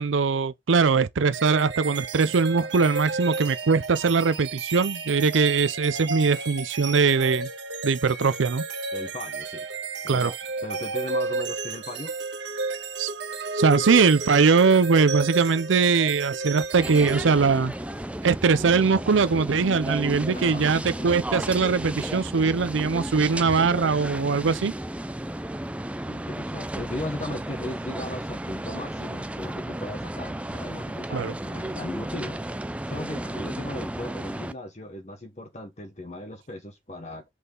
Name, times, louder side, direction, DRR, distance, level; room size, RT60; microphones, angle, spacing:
voice 1, 0.0-7.5 7.8-8.6 10.1-10.3 13.0-13.1 13.5-17.7 18.2-24.7 31.1-31.3, right 5 dB, 85° right, 0.5 m, -21 dB
sound 1, 1.3-18.0, right 3 dB, 70° right, 1.5 m, -32 dB
voice 2, 8.9-9.7 10.0-12.1 20.3-21.1 26.1-37.3, left 1 dB, 35° left, 1.1 m, -37 dB
sound 2, 16.8-34.5, right 1 dB, 5° right, 0.4 m, -33 dB
6.2 x 5.5 x 3.7 m
head